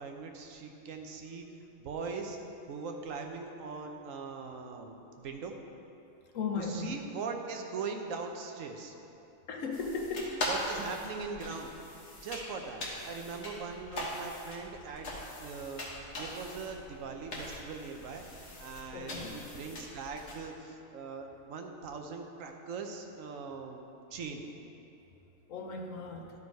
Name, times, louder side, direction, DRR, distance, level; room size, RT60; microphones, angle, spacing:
voice 1, 0.0-1.5 1.8-2.4 2.7-5.5 6.6-8.9 10.5-11.8 12.2-15.1 15.4-24.4, right 4 dB, 70° right, 3 dB, 1.1 m, -41 dB
voice 2, 6.3-6.9 9.5-10.4 18.9-19.4 25.5-26.3, left 4 dB, 75° left, 2 dB, 1.2 m, -36 dB
sound 1, 9.7-20.4, left 1 dB, 55° left, 1.6 m, -41 dB
12.0 x 4.7 x 4.6 m, 2.9 s
omnidirectional pair, 1.4 m